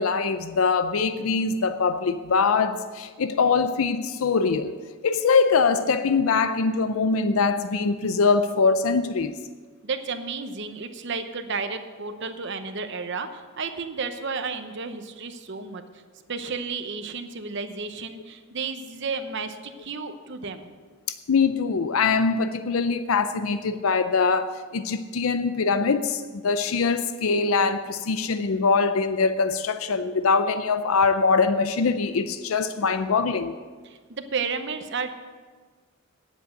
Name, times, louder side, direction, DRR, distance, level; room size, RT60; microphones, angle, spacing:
voice 1, 0.0-4.7 5.0-9.3 21.3-33.5, left 4 dB, 85° left, 11 dB, 0.5 m, -23 dB
voice 2, 9.8-16.0 16.3-20.7 33.8-35.1, right 4 dB, 55° right, 8 dB, 0.9 m, -32 dB
9.9 x 8.1 x 7.8 m, 1.5 s
head